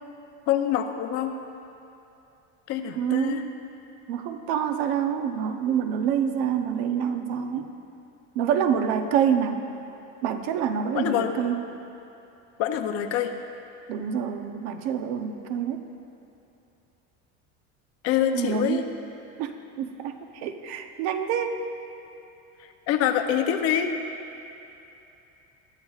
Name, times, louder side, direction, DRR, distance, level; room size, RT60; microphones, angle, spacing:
voice 1, 0.5-1.3 2.7-3.4 10.9-11.3 12.6-13.3 18.0-18.9 22.9-23.9, left 10 dB, 45° left, 6 dB, 0.7 m, -25 dB
voice 2, 3.0-3.5 4.1-7.7 8.3-9.7 10.2-11.7 13.9-15.8 18.3-18.8 19.4-21.6, right 8 dB, 75° right, 6 dB, 1.0 m, -27 dB
20.5 x 13.0 x 2.5 m, 2.9 s
cardioid pair, 175°, 33 cm